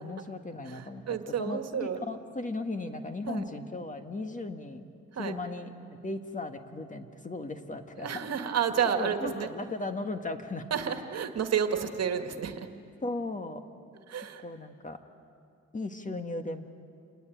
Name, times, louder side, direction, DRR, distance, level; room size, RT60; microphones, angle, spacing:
voice 1, 0.0-4.8 5.2-5.7 6.0-8.2 8.8-10.7 13.0-13.6 14.4-15.0 15.7-16.7, left 2 dB, 25° left, 7 dB, 1.8 m, -36 dB
voice 2, 0.7-2.0 3.3-3.4 5.1-5.3 8.0-9.5 10.7-12.7 14.1-14.4, right 8 dB, 55° right, 7 dB, 2.0 m, -30 dB
28.0 x 20.0 x 9.4 m, 2.4 s
cardioid pair, 90°, 30 cm